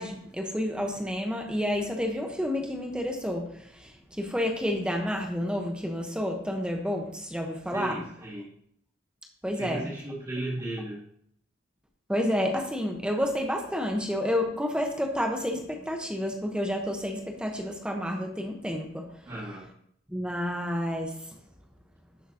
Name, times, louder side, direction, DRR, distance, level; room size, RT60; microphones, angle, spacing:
voice 1, 0.0-8.0 9.4-9.9 12.1-19.3 20.1-21.4, equal, 5° right, 3 dB, 1.0 m, -30 dB
voice 2, 7.7-8.5 9.6-11.0 19.2-19.7, right 1 dB, 25° right, -10 dB, 2.5 m, -35 dB
12.5 x 7.0 x 2.9 m, 0.70 s
head